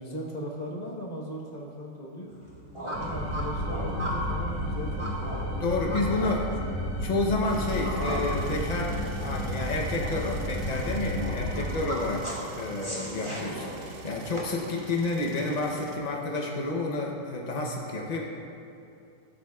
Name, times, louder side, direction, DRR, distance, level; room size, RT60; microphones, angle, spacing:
voice 1, 0.0-2.3 3.0-6.5, equal, 30° left, -2 dB, 1.0 m, -38 dB
sound 1, 2.3-14.4, right 1 dB, 20° right, 1.5 m, -38 dB
sound 2, 2.9-11.8, equal, 35° right, 2.6 m, -32 dB
voice 2, 5.6-6.5 7.0-12.2 12.5-18.2, left 2 dB, 70° left, -1 dB, 0.4 m, -30 dB
sound 3, 7.5-16.0, right 3 dB, 65° right, 0.5 m, -47 dB
15.0 x 7.7 x 2.3 m, 2.6 s
omnidirectional pair, 1.9 m